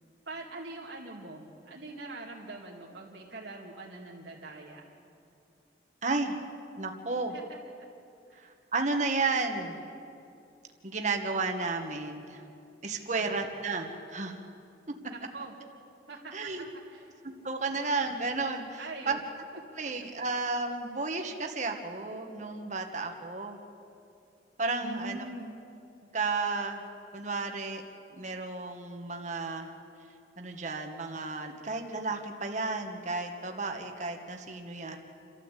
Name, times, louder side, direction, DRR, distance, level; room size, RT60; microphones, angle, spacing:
voice 1, 0.3-4.8 7.3-7.4 8.3-8.5 13.1-13.4 15.1-15.6 16.1-17.1 18.8-19.2 24.8-25.5, right 2 dB, 80° right, -4 dB, 2.3 m, -43 dB
voice 2, 6.0-6.4 6.8-7.3 8.4-9.8 10.8-12.4 12.8-14.3 16.3-16.6 17.4-19.2 19.8-23.6 24.6-25.2 26.1-26.8 27.1-27.8 28.1-29.7 30.4-35.0, right 3 dB, 40° right, 4 dB, 1.5 m, -32 dB
29.0 x 13.0 x 8.4 m, 2.6 s
head